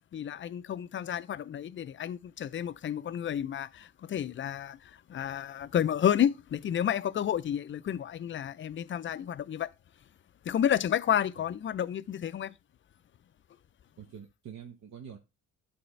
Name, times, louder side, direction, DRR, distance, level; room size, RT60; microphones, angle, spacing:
voice 1, 0.1-4.8 5.1-9.7 10.5-12.5, left 9 dB, 40° left, 0.5 m, -30 dB
voice 2, 14.0-15.2, right 8 dB, 60° right, 1.2 m, -46 dB
11.0 x 4.3 x 3.2 m
cardioid pair, 90°, 30 cm